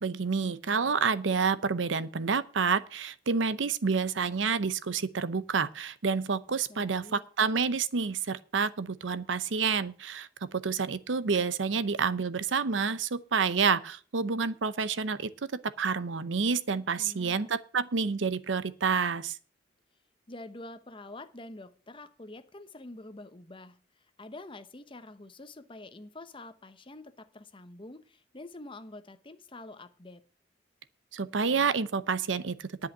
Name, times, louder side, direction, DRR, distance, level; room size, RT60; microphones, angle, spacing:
voice 1, 0.0-15.5 15.8-19.4 31.1-32.5, right 5 dB, 80° right, 0.7 m, -29 dB
voice 2, 6.7-7.2 17.0-17.5 20.3-23.8 24.2-30.2, left 2 dB, 25° left, 0.9 m, -46 dB
10.5 x 5.6 x 8.7 m
head